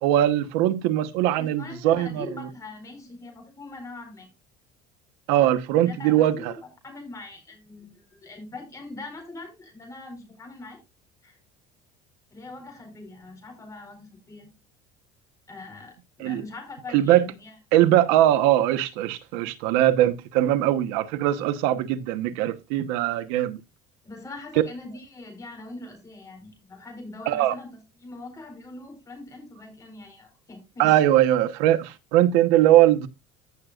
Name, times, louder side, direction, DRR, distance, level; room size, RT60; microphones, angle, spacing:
voice 1, 0.0-2.5 5.3-6.5 16.2-16.4 16.9-17.3 17.7-23.6 27.3-27.6 30.8-33.1, right 13 dB, 85° right, 1.2 m, -21 dB
voice 2, 1.4-4.3 5.9-6.6 6.8-10.8 11.2-11.4 12.3-14.5 15.5-17.6 24.0-31.0, left 2 dB, 15° left, 4.4 m, -42 dB
15.5 x 6.6 x 2.5 m
cardioid pair, 160°, 19 cm